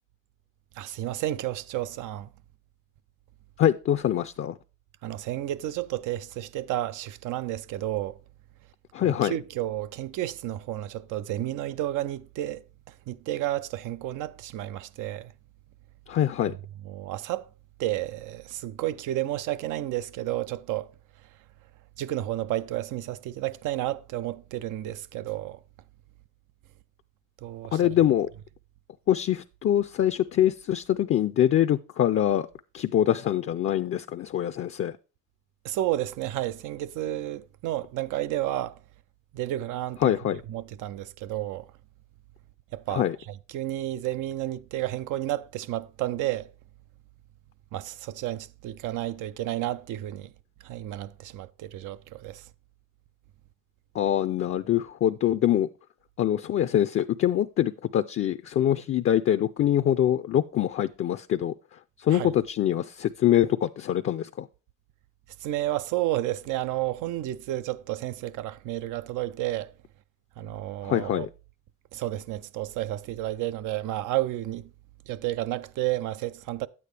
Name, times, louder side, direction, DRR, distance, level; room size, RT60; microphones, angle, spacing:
voice 1, 0.7-2.3 5.0-8.2 9.0-15.3 16.5-17.5 17.8-20.9 21.2-21.3 22.0-25.6 27.4-28.0 35.6-38.8 39.3-40.2 40.5-41.7 42.7-46.5 47.7-50.3 50.6-52.5 62.1-62.3 65.4-69.7 70.4-71.3 71.9-74.7 75.1-76.7, right 14 dB, 85° right, 0.5 m, -31 dB
voice 2, 3.6-4.6 8.9-9.3 16.1-16.5 27.7-28.3 29.1-32.5 32.7-35.0 40.0-40.4 42.9-43.2 53.9-55.7 56.2-61.5 62.0-64.5 70.8-71.3, left 11 dB, 45° left, 0.4 m, -24 dB
9.2 x 8.4 x 3.3 m
cardioid pair, 90°, 30 cm